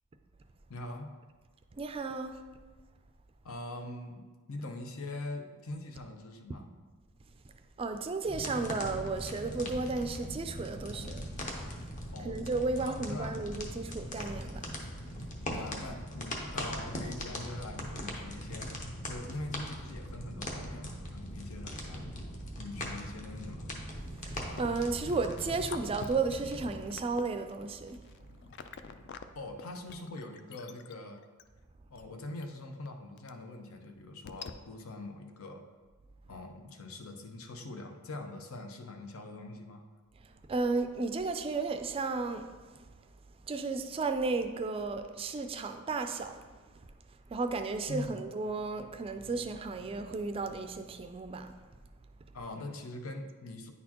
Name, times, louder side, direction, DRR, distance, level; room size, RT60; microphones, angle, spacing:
voice 1, 0.7-1.1 3.4-6.7 12.1-12.4 12.8-13.6 15.5-22.1 22.6-23.7 29.3-31.2 31.9-35.6 36.3-39.8 47.9-48.2 52.3-53.7, left 2 dB, 80° left, 5 dB, 0.7 m, -43 dB
voice 2, 1.8-2.4 7.8-11.3 12.2-14.7 24.2-28.0 40.2-42.9 43.5-46.4 47.3-51.5, right 3 dB, 25° right, 7 dB, 0.3 m, -34 dB
sound 1, 8.3-26.9, equal, 35° left, 0.8 m, -40 dB
sound 2, 24.2-29.2 29.6-31.4 32.0-32.1 32.4-32.5 32.8-32.9 33.2-33.3 33.8-33.9 34.2-34.5, left 6 dB, 55° left, 0.3 m, -46 dB
9.4 x 4.2 x 2.9 m, 1.4 s
head